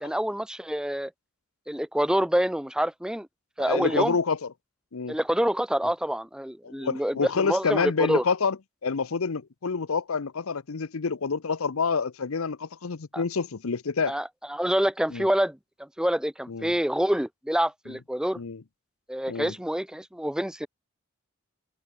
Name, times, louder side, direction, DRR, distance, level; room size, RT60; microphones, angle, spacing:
voice 1, 0.0-1.1 1.7-3.3 3.6-4.2 5.1-8.2 13.1-13.2 14.1-18.4 19.1-20.7, equal, 5° right, 0.7 m, -27 dB
voice 2, 3.6-4.5 4.9-5.1 6.6-8.6 8.8-14.2 15.1-15.3 16.5-16.7 18.4-18.6 19.3-19.5, left 5 dB, 80° left, 0.7 m, -28 dB
open air
head